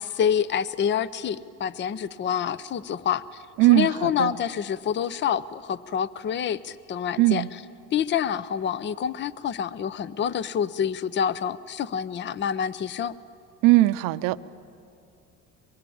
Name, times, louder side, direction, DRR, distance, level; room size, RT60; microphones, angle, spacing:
voice 1, 0.0-3.4 3.7-7.4 7.9-13.1, left 8 dB, 35° left, 17 dB, 0.6 m, -27 dB
voice 2, 3.6-4.3 7.2-7.5 13.6-14.4, right 17 dB, 80° right, 13 dB, 0.7 m, -19 dB
23.5 x 22.0 x 8.6 m, 2.5 s
cardioid pair, 100°, 32 cm